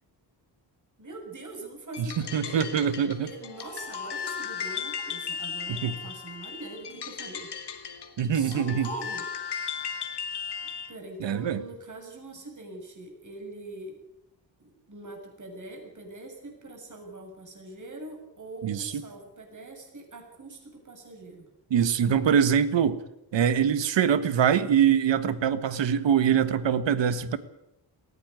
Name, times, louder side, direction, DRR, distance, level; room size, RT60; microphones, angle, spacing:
voice 1, 1.0-9.2 10.9-14.0 14.6-21.5, right 2 dB, 40° right, 2 dB, 7.2 m, -43 dB
sound 1, 1.9-11.0, left 7 dB, 60° left, 2.3 m, -36 dB
voice 2, 2.0-3.3 5.7-5.9 8.2-8.9 11.2-11.6 18.6-18.9 21.7-23.0 23.3-27.4, right 8 dB, 75° right, 14 dB, 1.7 m, -24 dB
18.5 x 15.5 x 9.8 m, 0.84 s
cardioid pair, 80°, 44 cm